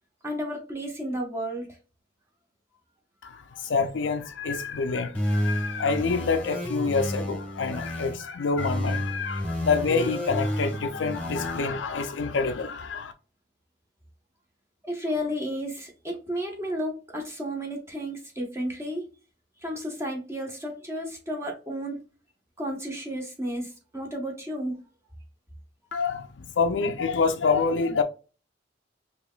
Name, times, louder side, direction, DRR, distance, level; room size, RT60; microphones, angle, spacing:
voice 1, 0.2-1.7 14.8-19.1 19.6-22.0 22.6-24.8, equal, 15° right, 1.2 m, -32 dB
voice 2, 3.2-13.1 25.9-28.0, left 4 dB, 80° left, 0.4 m, -27 dB
sound 1, 5.1-8.2 8.6-11.6, left 1 dB, 5° left, 1.4 m, -30 dB
4.8 x 3.0 x 2.3 m
head